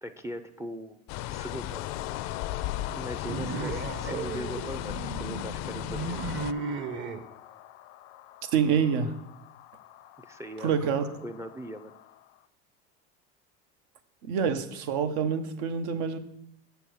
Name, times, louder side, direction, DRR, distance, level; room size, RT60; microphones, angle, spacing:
voice 1, 0.0-1.9 2.2-2.4 2.9-6.4 10.2-11.9, equal, 10° right, 8 dB, 0.4 m, -40 dB
sound 1, 1.1-6.5, left 14 dB, 55° left, 0.4 m, -35 dB
sound 2, 1.7-12.5, left 13 dB, 90° left, 0.7 m, -47 dB
sound 3, 3.3-7.2, right 4 dB, 35° right, 0.8 m, -35 dB
voice 2, 8.5-9.2 10.6-11.0 14.2-16.2, right 7 dB, 75° right, 10 dB, 1.0 m, -26 dB
6.9 x 6.9 x 6.3 m, 0.78 s
supercardioid pair, 110°, 32 cm